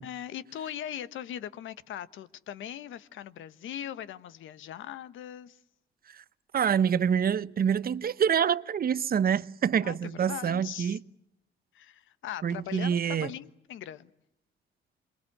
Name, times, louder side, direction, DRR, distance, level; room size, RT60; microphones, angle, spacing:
voice 1, 0.0-5.6 9.8-11.0 11.7-14.1, left 10 dB, 80° left, 1.3 m, -40 dB
voice 2, 6.5-11.0 12.4-13.3, right 8 dB, 50° right, 1.0 m, -26 dB
27.5 x 22.0 x 8.7 m
cardioid pair, 90°, 20 cm